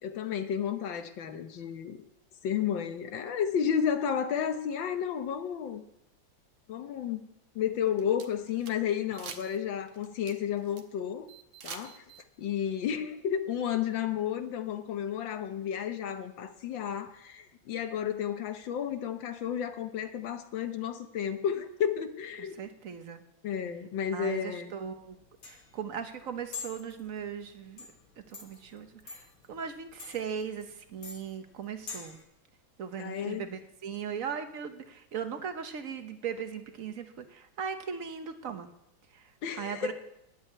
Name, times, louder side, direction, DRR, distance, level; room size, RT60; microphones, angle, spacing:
voice 1, 0.0-2.0 2.4-5.8 6.7-7.3 7.5-11.3 11.6-12.0 12.4-22.6 23.4-24.7 33.0-33.4 39.4-39.9, left 8 dB, 70° left, 9 dB, 1.7 m, -32 dB
sound 1, 7.7-8.7 9.1-9.6 9.9-10.8 11.3-12.2, right 7 dB, 80° right, 1.8 m, -45 dB
voice 2, 22.4-23.2 24.1-25.2 25.4-27.9 28.3-32.2 32.8-38.7 39.1-39.9, right 7 dB, 50° right, 8 dB, 1.2 m, -38 dB
sound 2, 24.8-32.2, left 5 dB, 45° left, 1.7 m, -47 dB
10.0 x 8.8 x 8.5 m, 0.81 s
omnidirectional pair, 2.2 m